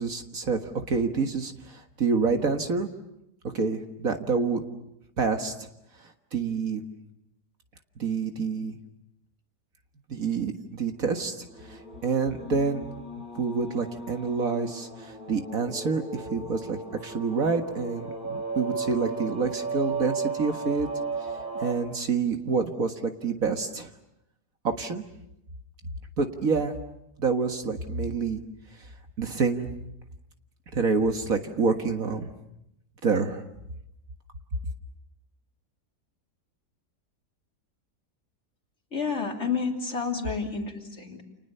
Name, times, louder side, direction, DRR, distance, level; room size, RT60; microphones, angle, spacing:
voice 1, 0.0-2.9 3.5-4.6 5.2-5.7 6.0-6.8 8.0-8.8 10.1-12.9 13.4-20.9 21.5-23.9 24.6-25.0 26.2-26.8 27.2-28.4 29.2-29.7 30.7-32.3 33.0-33.4, right 4 dB, 55° right, 6 dB, 2.0 m, -27 dB
sound 1, 11.4-21.7, right 4 dB, 5° right, 7.3 m, -35 dB
voice 2, 38.9-41.2, left 5 dB, 40° left, 2 dB, 3.5 m, -30 dB
30.0 x 28.5 x 6.8 m, 0.82 s
omnidirectional pair, 1.8 m